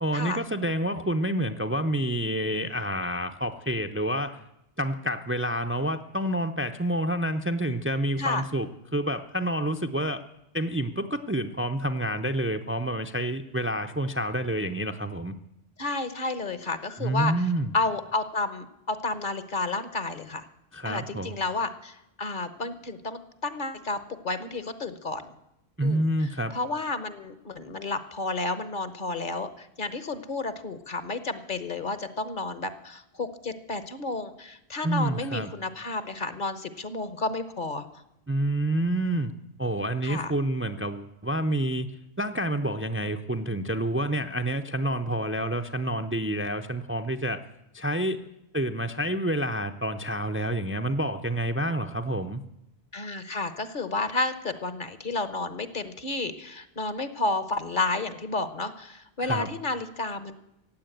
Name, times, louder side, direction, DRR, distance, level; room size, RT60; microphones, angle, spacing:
voice 1, 0.0-4.4 4.8-10.2 10.5-15.3 17.0-17.7 20.7-21.4 25.8-26.5 34.8-35.5 38.3-39.3 39.6-41.9 42.2-47.4 47.7-48.2 48.5-52.4 59.2-59.5, right 1 dB, 15° right, 6 dB, 0.5 m, -28 dB
voice 2, 15.8-17.5 17.7-20.5 20.8-25.3 25.8-37.9 40.0-40.3 52.9-60.4, left 3 dB, 50° left, 12 dB, 1.2 m, -31 dB
16.0 x 8.6 x 9.1 m, 0.86 s
omnidirectional pair, 1.1 m